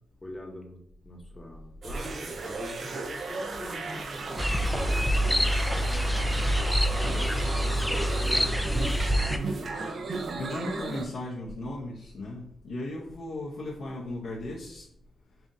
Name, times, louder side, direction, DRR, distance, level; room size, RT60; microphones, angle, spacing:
voice 1, 0.2-6.4 6.9-9.9, left 1 dB, 25° left, 1 dB, 0.9 m, -43 dB
sound 1, 1.8-11.0, right 3 dB, 60° right, 0.5 m, -35 dB
sound 2, 4.4-9.4, equal, 5° left, 0.3 m, -26 dB
voice 2, 6.9-7.2 10.3-14.9, left 1 dB, 75° left, -5 dB, 0.8 m, -36 dB
5.5 x 2.5 x 2.7 m, 0.71 s
cardioid pair, 85°, 0 cm